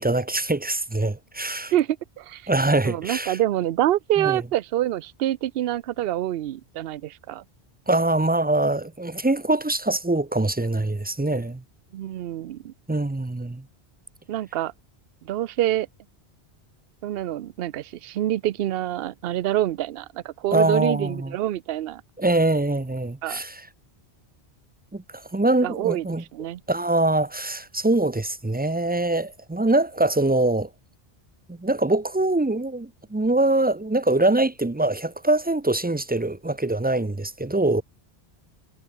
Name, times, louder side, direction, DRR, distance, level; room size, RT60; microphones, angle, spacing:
voice 1, 0.0-1.7 2.5-3.4 4.2-4.4 7.9-11.6 12.9-13.6 20.5-21.3 22.2-23.6 24.9-25.0 25.3-26.2 26.7-30.7 31.5-37.8, right 2 dB, 15° right, 0.3 m, -23 dB
voice 2, 1.7-2.5 2.8-7.4 11.9-12.7 14.3-14.7 15.2-15.9 17.0-22.0 23.2-23.4 25.6-26.6, right 13 dB, 70° right, 0.8 m, -26 dB
omnidirectional pair, 1.1 m